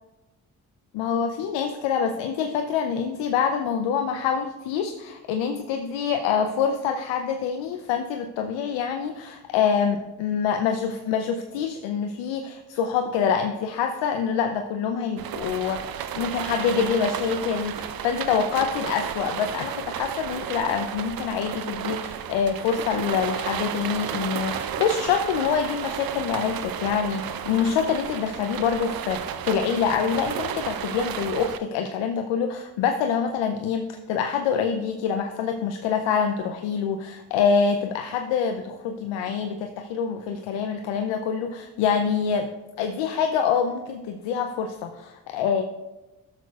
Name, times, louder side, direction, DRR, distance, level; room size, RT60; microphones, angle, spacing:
voice 1, 0.9-15.8 16.1-42.5 42.8-45.6, left 7 dB, 80° left, 6 dB, 0.6 m, -26 dB
sound 1, 15.2-31.6, right 9 dB, 55° right, 0.6 m, -32 dB
11.5 x 6.6 x 2.3 m, 1.1 s
hypercardioid pair, 40°, 44 cm